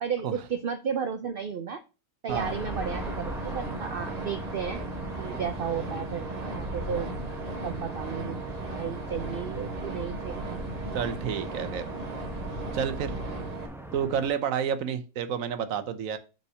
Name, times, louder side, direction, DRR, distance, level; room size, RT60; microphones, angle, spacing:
voice 1, 0.0-1.8 2.2-4.8 5.2-7.1 7.6-8.4 8.6-10.6, right 7 dB, 60° right, 9 dB, 0.6 m, -33 dB
sound 1, 2.3-14.3, right 1 dB, ahead, 0.9 m, -41 dB
sound 2, 2.3-13.7, right 2 dB, 30° right, 1.1 m, -36 dB
voice 2, 10.9-11.8 12.7-13.2 13.9-16.2, right 8 dB, 90° right, 10 dB, 1.2 m, -30 dB
5.6 x 4.5 x 6.1 m, 0.32 s
omnidirectional pair, 1.4 m